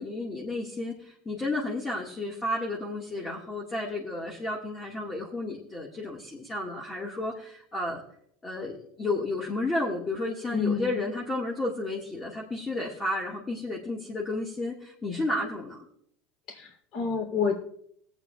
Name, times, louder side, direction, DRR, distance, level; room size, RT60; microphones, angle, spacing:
voice 1, 0.0-8.0 8.4-15.9, left 2 dB, 15° left, -3 dB, 1.7 m, -32 dB
voice 2, 10.5-11.0 16.5-17.6, left 5 dB, 50° left, 3 dB, 3.0 m, -29 dB
20.0 x 8.2 x 2.3 m, 0.68 s
supercardioid pair, 135°, 0 cm